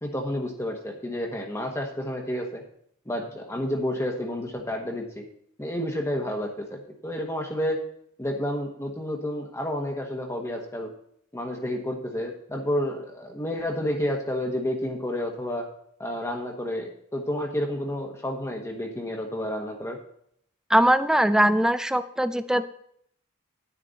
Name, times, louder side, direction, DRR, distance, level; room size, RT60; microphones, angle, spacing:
voice 1, 0.0-2.6 3.1-5.2 5.6-7.8 8.2-10.9 11.3-15.6 16.0-20.0, left 1 dB, 15° left, 1 dB, 1.1 m, -30 dB
voice 2, 20.7-22.6, right 1 dB, 5° right, 12 dB, 0.4 m, -21 dB
9.8 x 9.4 x 4.1 m, 0.68 s
head